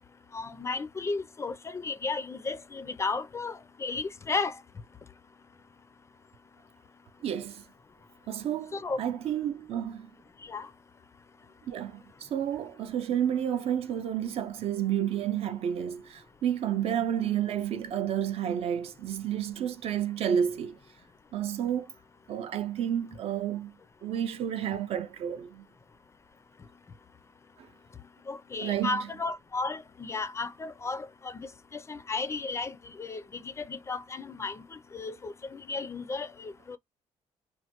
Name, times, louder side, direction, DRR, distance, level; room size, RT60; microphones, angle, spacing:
voice 1, 0.3-4.6 8.7-9.0 10.4-10.7 28.3-31.4 31.7-36.8, left 3 dB, 25° left, 0.4 m, -34 dB
voice 2, 7.2-7.6 8.3-10.1 11.7-20.8 21.3-21.9 22.3-23.7 24.0-25.7 27.6-27.7 28.6-29.1, right 9 dB, 55° right, 0.4 m, -31 dB
3.1 x 2.1 x 2.8 m
cardioid pair, 140°, 12 cm